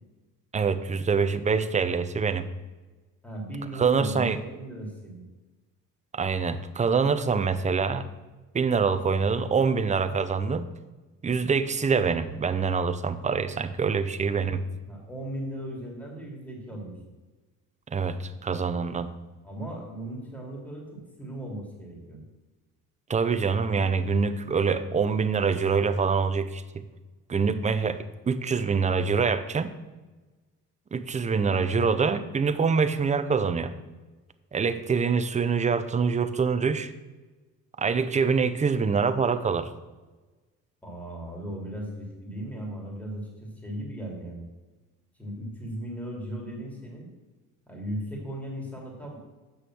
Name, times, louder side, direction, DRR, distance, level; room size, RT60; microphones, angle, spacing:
voice 1, 0.5-2.5 3.8-4.4 6.1-8.1 8.5-10.7 11.2-14.6 17.9-19.1 23.1-26.6 27.3-29.7 30.9-33.7 34.5-36.9 37.8-39.7, right 5 dB, 20° right, 11 dB, 0.7 m, -25 dB
voice 2, 3.2-5.2 14.8-16.9 19.4-22.2 40.8-44.5 45.2-47.1 47.7-49.2, right 1 dB, 5° left, -2 dB, 2.9 m, -37 dB
8.0 x 6.3 x 6.2 m, 1.2 s
cardioid pair, 100°, 33 cm